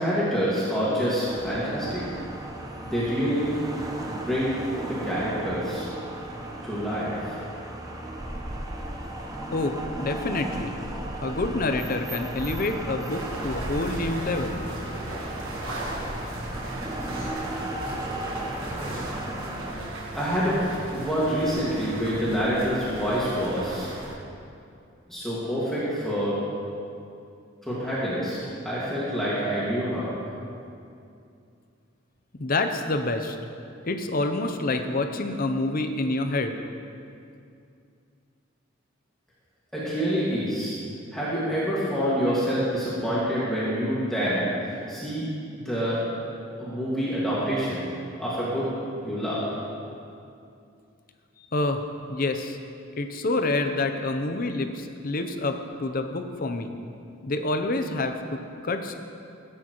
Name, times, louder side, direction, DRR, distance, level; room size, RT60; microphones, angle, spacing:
voice 1, 0.0-2.2 2.8-3.5 4.1-5.9 6.6-7.4 20.2-23.9 25.1-26.4 27.6-28.4 28.6-30.1 39.7-40.8 41.1-45.3 45.5-46.0 46.6-47.8 48.2-48.7 49.0-49.4, equal, ahead, -10 dB, 1.9 m, -27 dB
sound 1, 1.2-19.7, right 1 dB, 20° right, 0.8 m, -35 dB
voice 2, 9.5-10.7 11.2-14.6 32.4-33.4 33.8-36.6 51.5-52.6 53.0-56.7 57.2-58.9, left 2 dB, 45° left, 6 dB, 0.7 m, -27 dB
sound 2, 13.1-24.2, right 1 dB, 85° right, 1.5 m, -37 dB
16.0 x 8.7 x 3.1 m, 2.5 s
head